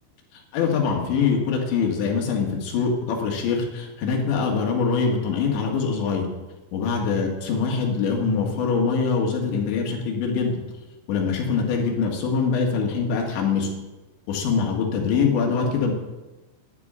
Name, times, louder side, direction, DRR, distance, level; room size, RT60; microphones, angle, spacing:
voice 1, 0.5-6.3 6.7-10.5 11.1-13.7 14.3-15.9, left 5 dB, 85° left, 0 dB, 4.2 m, -23 dB
11.5 x 7.4 x 9.6 m, 1.1 s
omnidirectional pair, 5.1 m